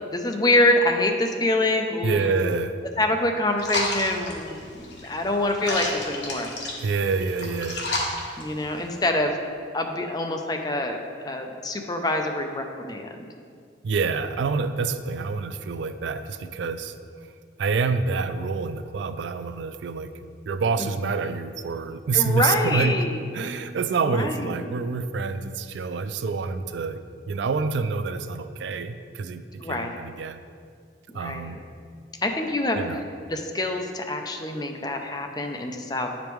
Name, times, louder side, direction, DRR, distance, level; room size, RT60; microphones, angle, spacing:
voice 1, 0.1-2.4 3.0-6.5 8.4-9.4 9.7-13.3 20.8-20.9 22.1-23.2 24.0-24.5 29.6-30.0 31.1-31.6 32.2-32.8 33.3-36.2, left 1 dB, 20° left, 4 dB, 0.5 m, -25 dB
voice 2, 2.0-2.8 6.8-7.9 13.8-17.0 17.6-20.1 20.5-22.9 23.3-30.4 31.1-31.6 32.8-33.0, right 4 dB, 70° right, 10 dB, 0.3 m, -27 dB
sound 1, 3.6-9.0, left 2 dB, 70° left, 1.2 m, -32 dB
9.4 x 5.1 x 3.1 m, 2.2 s
head